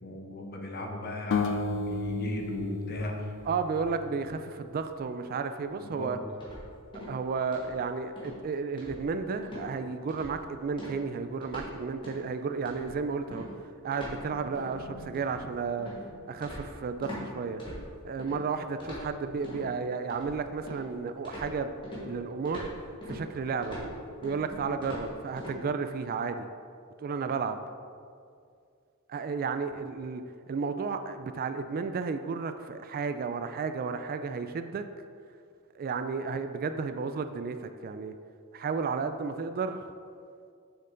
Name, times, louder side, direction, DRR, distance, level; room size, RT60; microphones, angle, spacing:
voice 1, 0.0-3.3 5.8-6.1, left 1 dB, 45° left, 2 dB, 0.9 m, -36 dB
sound 1, 1.3-4.5, left 3 dB, 65° left, 0.4 m, -33 dB
voice 2, 3.5-6.2 7.1-13.5 13.8-15.9 16.3-17.6 18.0-21.7 22.0-22.7 23.0-23.8 24.2-26.5 27.0-27.6 29.1-30.2 30.5-34.8 35.8-38.1 38.5-39.8, right 5 dB, 45° right, 9 dB, 0.3 m, -33 dB
sound 2, 6.4-7.2 7.5-7.8 8.2-8.4 8.8-9.2 9.4-9.7 10.1-10.4 10.8-11.7 12.0-12.3 12.6-17.2 17.6-18.4 18.8-19.6 20.1-20.9 21.2-25.6, equal, 25° left, 1.8 m, -42 dB
6.7 x 6.5 x 3.8 m, 2.3 s
head